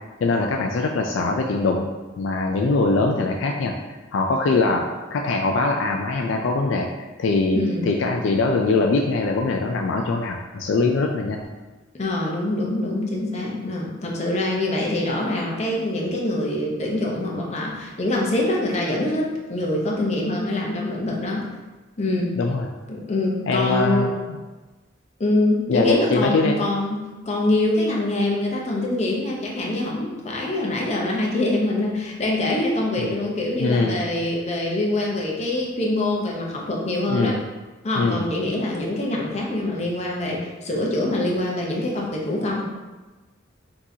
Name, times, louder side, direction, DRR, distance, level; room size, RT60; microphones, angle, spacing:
voice 1, 0.2-1.9 2.2-3.7 4.1-11.4 22.4-22.7 23.5-24.1 25.7-26.6 33.0-33.2 33.6-34.0 37.1-37.4 37.9-38.2, left 3 dB, 70° left, 1 dB, 0.3 m, -22 dB
voice 2, 7.5-7.9 11.9-21.5 22.0-22.3 22.9-24.1 25.2-37.4 37.8-42.6, left 1 dB, 35° left, -2 dB, 0.8 m, -24 dB
6.0 x 2.9 x 2.7 m, 1.2 s
head